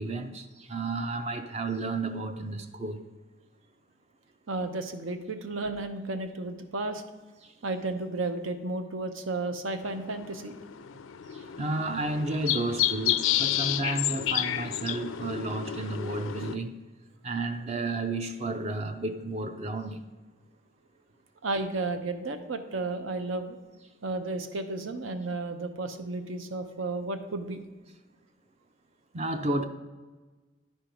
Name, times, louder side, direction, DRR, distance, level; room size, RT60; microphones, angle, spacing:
voice 1, 0.0-3.0 7.4-7.5 11.3-16.8 17.2-20.1 29.1-29.6, right 2 dB, 35° right, 0.4 m, -32 dB
voice 2, 4.5-7.0 7.6-10.6 21.4-23.6 24.0-27.6, right 2 dB, 85° right, 0.8 m, -33 dB
sound 1, 9.8-16.6, left 12 dB, 85° left, 0.4 m, -31 dB
10.0 x 4.5 x 5.1 m
head